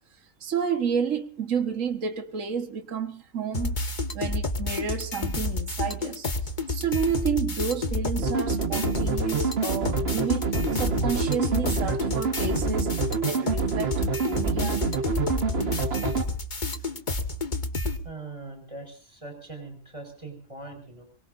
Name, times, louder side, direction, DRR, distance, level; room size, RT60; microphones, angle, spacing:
voice 1, 0.4-3.8 4.1-6.3 6.7-14.8, right 7 dB, 65° right, 1.8 m, -30 dB
sound 1, 3.5-18.0, left 3 dB, 35° left, 1.7 m, -30 dB
sound 2, 8.2-16.2, right 5 dB, 50° right, 1.7 m, -27 dB
voice 2, 18.0-21.0, right 3 dB, 25° right, 6.0 m, -41 dB
24.0 x 23.0 x 2.6 m
omnidirectional pair, 1.4 m